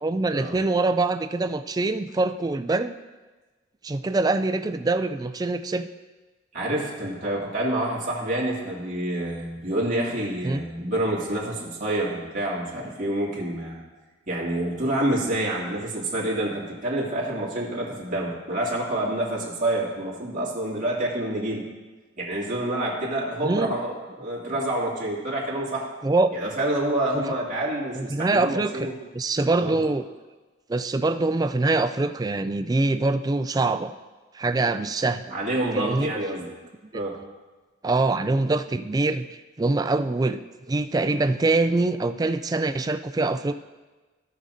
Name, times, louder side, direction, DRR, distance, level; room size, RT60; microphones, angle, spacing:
voice 1, 0.0-2.9 3.8-5.9 10.4-10.6 23.4-23.7 26.0-26.3 27.1-27.2 28.0-30.0 30.7-33.9 34.3-35.2 35.7-36.1 36.9-37.0 37.8-39.3 39.6-40.4 40.7-43.5, right 2 dB, 20° right, 9 dB, 0.3 m, -24 dB
voice 2, 6.5-13.8 14.3-21.6 22.2-25.9 26.3-28.9 29.6-29.8 35.3-36.5 36.9-37.2, right 1 dB, 40° right, -5 dB, 2.4 m, -27 dB
16.5 x 6.3 x 2.7 m, 1.3 s
head